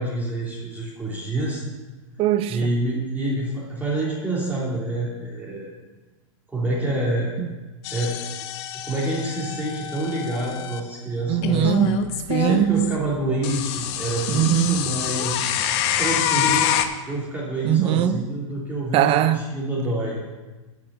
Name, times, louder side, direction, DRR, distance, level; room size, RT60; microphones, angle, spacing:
voice 1, 0.0-1.6 2.5-5.7 6.5-7.3 7.9-8.1 8.7-11.9 12.4-15.5 16.0-16.7 17.1-20.2, right 2 dB, 10° right, 3.0 m, -27 dB
voice 2, 2.2-2.7 7.4-7.5 11.3-12.9 14.3-14.8 17.6-18.2 18.9-19.4, right 11 dB, 35° right, 0.6 m, -21 dB
sound 1, 7.8-10.8 11.4-13.0 13.4-16.8, left 11 dB, 55° left, 0.9 m, -26 dB
10.5 x 5.8 x 6.8 m
hypercardioid pair, 115°, 17 cm